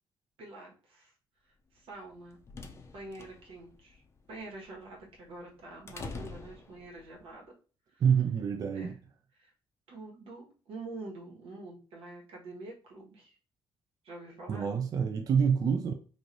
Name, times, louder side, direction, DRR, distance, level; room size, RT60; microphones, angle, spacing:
voice 1, 0.4-1.1 1.7-2.4 2.9-4.0 4.3-7.5 7.9-8.0 8.7-9.0 9.4-9.5 9.9-13.4 14.0-14.7, right 2 dB, 85° right, 1.3 m, -46 dB
sound 1, 2.0-7.2, left 3 dB, 30° left, 0.5 m, -47 dB
voice 2, 8.0-9.0 14.5-15.9, right 7 dB, 40° right, 0.3 m, -27 dB
3.1 x 2.6 x 3.8 m
cardioid pair, 140°, 9 cm